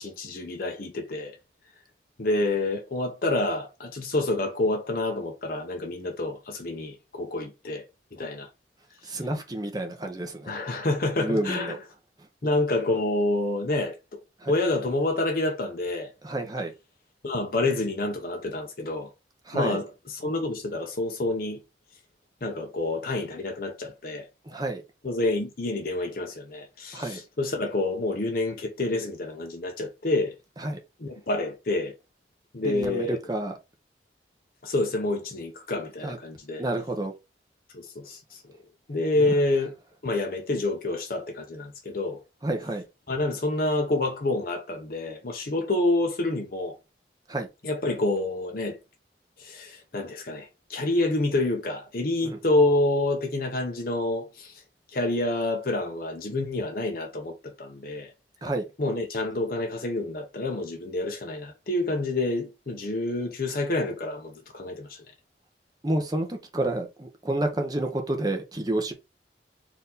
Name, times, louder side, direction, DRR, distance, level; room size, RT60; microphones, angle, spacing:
voice 1, 0.0-1.4 2.2-8.5 10.5-11.8 12.4-14.0 14.5-16.1 17.2-19.1 19.5-21.6 22.4-24.3 25.0-30.3 31.0-31.9 32.5-33.2 34.6-36.6 37.7-38.4 38.9-39.7 40.0-42.2 43.1-46.8 47.6-48.8 49.4-54.6 54.9-58.1 58.8-65.0, left 2 dB, 55° left, 0.8 m, -28 dB
voice 2, 9.0-10.5 11.2-11.8 14.4-14.5 16.2-16.7 19.5-19.8 24.4-24.8 26.9-27.2 30.6-30.8 32.6-33.6 36.0-36.2 36.6-37.1 39.2-39.4 42.4-42.8 47.3-47.5 52.2-52.4 58.4-58.6 65.8-68.9, right 1 dB, 20° right, 0.8 m, -29 dB
4.4 x 2.7 x 3.8 m
head